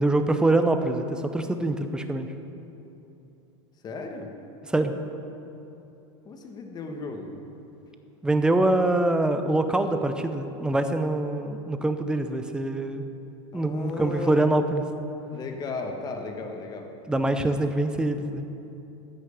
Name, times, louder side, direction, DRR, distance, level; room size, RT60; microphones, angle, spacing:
voice 1, 0.0-2.3 4.7-4.9 8.2-13.0 13.5-14.8 17.1-18.5, right 2 dB, 5° right, 7 dB, 0.6 m, -24 dB
voice 2, 3.8-4.3 6.2-7.4 13.5-14.4 15.3-16.9, left 3 dB, 25° left, 3 dB, 1.4 m, -35 dB
13.5 x 6.3 x 8.2 m, 2.9 s
supercardioid pair, 140°, 16 cm